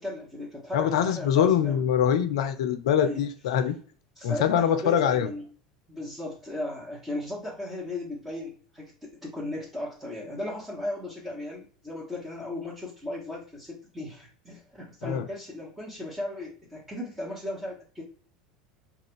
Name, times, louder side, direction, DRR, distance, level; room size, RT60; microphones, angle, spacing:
voice 1, 0.0-1.8 3.0-3.2 3.5-3.6 4.1-5.4 5.9-14.6 14.9-18.0, left 1 dB, 10° right, -6 dB, 1.1 m, -36 dB
voice 2, 0.7-3.7 4.2-5.3 15.0-15.2, left 9 dB, 65° left, 9 dB, 0.4 m, -24 dB
2.3 x 2.3 x 3.6 m, 0.43 s
figure-of-eight pair, 75°, 3 cm